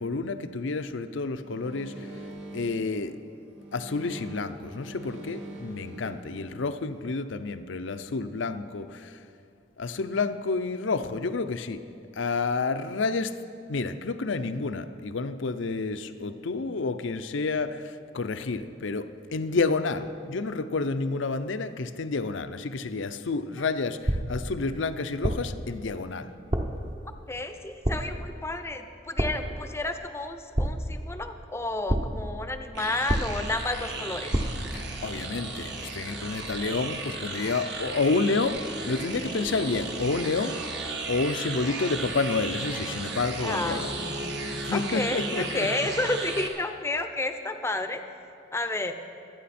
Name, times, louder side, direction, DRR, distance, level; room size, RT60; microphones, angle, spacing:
voice 1, 0.0-2.1 2.5-3.2 3.7-9.1 9.8-11.8 12.2-13.4 13.7-26.3 34.7-40.8 41.1-43.9 44.6-45.7, left 3 dB, 70° left, 11 dB, 0.6 m, -29 dB
sound 1, 1.4-7.1, right 1 dB, 80° right, 2.5 m, -43 dB
sound 2, 24.1-24.5 25.2-25.6 26.5-26.9 27.8-28.3 29.2-29.6 30.6-31.1 31.9-32.3 33.1-33.6 34.3-34.8, right 1 dB, 30° right, 0.8 m, -28 dB
voice 2, 27.3-34.4 43.4-44.3 44.7-48.0 48.5-48.9, left 2 dB, 15° left, 7 dB, 0.6 m, -31 dB
sound 3, 32.7-46.5, right 3 dB, 60° right, 1.5 m, -35 dB
24.5 x 9.3 x 4.3 m, 2.5 s
head